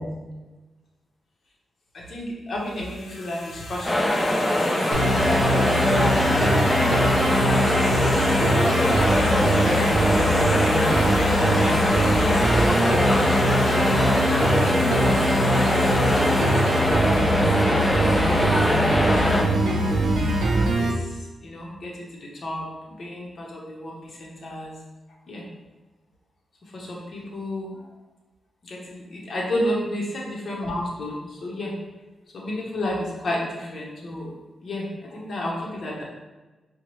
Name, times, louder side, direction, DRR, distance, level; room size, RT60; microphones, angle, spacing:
voice 1, 1.9-4.9 6.0-6.8 7.2-13.4 14.6-17.6 18.1-19.8 20.7-20.9 21.4-24.7 25.3-25.4 26.7-27.7 28.6-31.7 32.3-34.3 34.6-36.0, left 1 dB, 60° left, -3 dB, 0.9 m, -33 dB
sound 1, 2.7-17.8, left 2 dB, 85° left, 0.5 m, -33 dB
sound 2, 3.8-19.4, left 1 dB, 20° left, 0.5 m, -22 dB
sound 3, 4.9-20.9, right 1 dB, 90° right, 0.6 m, -22 dB
4.5 x 2.1 x 3.0 m, 1.1 s
cardioid pair, 95°, 0 cm